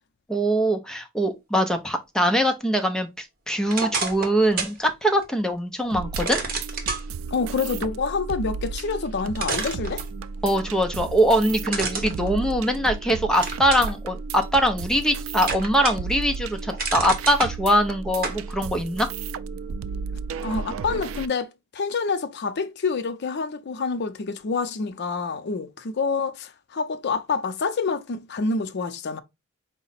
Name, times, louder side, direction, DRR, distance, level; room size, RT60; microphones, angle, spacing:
voice 1, 0.3-6.4 10.4-19.1, equal, 5° left, 0.5 m, -22 dB
sound 1, 3.7-4.8 5.2-5.3 6.2-7.0 8.8-8.9 9.4-10.4 11.7-13.0 13.4-13.9 14.4-15.1 15.4-16.1 16.5-17.5 18.2-18.4, right 4 dB, 45° right, 1.0 m, -29 dB
sound 2, 5.9-21.3, right 5 dB, 75° right, 0.3 m, -33 dB
voice 2, 7.3-10.0 20.4-29.2, left 4 dB, 55° left, 0.5 m, -27 dB
4.8 x 2.1 x 4.0 m
head